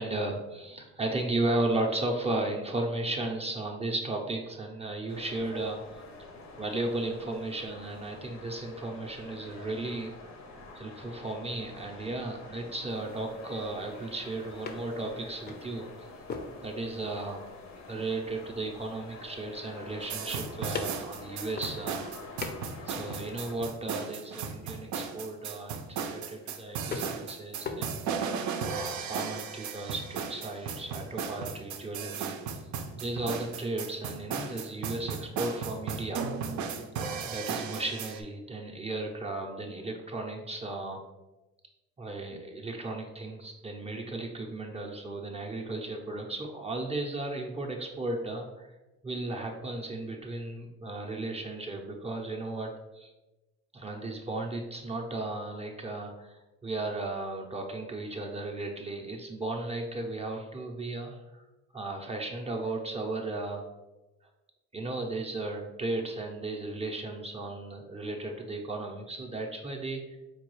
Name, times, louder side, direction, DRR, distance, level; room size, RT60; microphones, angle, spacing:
voice 1, 0.0-5.8 6.6-10.1 10.7-16.1 16.6-17.4 17.9-22.0 22.9-32.4 33.0-36.3 37.2-41.0 42.0-48.7 49.0-53.1 53.7-61.4 61.7-63.6 64.7-70.2, right 2 dB, 20° right, 1 dB, 0.5 m, -35 dB
sound 1, 5.1-23.6, left 3 dB, 65° left, 0.7 m, -47 dB
sound 2, 12.9-28.5, left 4 dB, 35° left, 0.5 m, -45 dB
sound 3, 20.0-38.2, right 6 dB, 70° right, 0.5 m, -35 dB
4.5 x 2.3 x 3.0 m, 1.1 s
cardioid pair, 90°, 30 cm